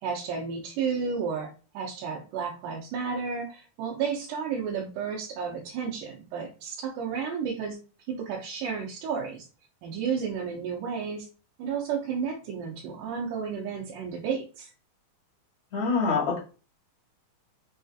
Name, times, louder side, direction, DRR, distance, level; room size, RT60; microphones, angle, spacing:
voice 1, 0.0-7.8 8.1-9.5 9.8-11.3 11.6-14.7, right 6 dB, 90° right, -2 dB, 2.4 m, -32 dB
voice 2, 15.7-16.4, left 4 dB, 60° left, -2 dB, 3.0 m, -25 dB
6.7 x 2.6 x 2.4 m, 0.34 s
omnidirectional pair, 3.6 m